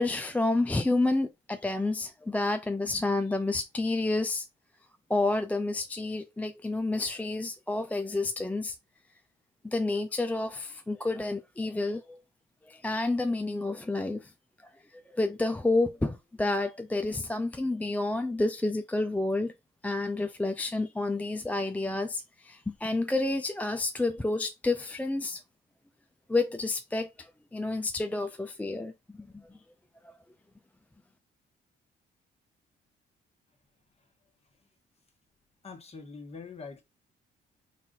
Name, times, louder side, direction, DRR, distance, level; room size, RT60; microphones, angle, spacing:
voice 1, 0.0-4.5 5.1-8.8 9.6-12.2 12.7-14.3 15.1-19.5 19.8-25.4 26.3-28.9 29.3-29.4 30.0-30.1, left 2 dB, 5° left, 0.4 m, -29 dB
voice 2, 35.6-36.8, left 4 dB, 30° left, 1.3 m, -43 dB
4.1 x 2.5 x 3.9 m
cardioid pair, 90°, 20 cm